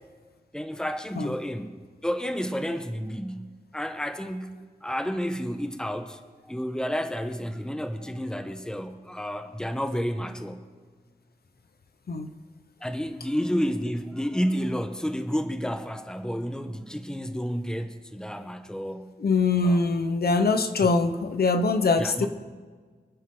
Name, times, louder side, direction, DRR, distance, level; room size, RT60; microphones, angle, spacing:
voice 1, 0.5-10.6 12.8-19.1 19.6-19.9 22.0-22.3, equal, 5° left, 7 dB, 1.1 m, -31 dB
voice 2, 19.2-22.3, left 3 dB, 85° left, 8 dB, 1.0 m, -23 dB
27.0 x 9.5 x 3.9 m, 1.5 s
wide cardioid pair, 100°, 16 cm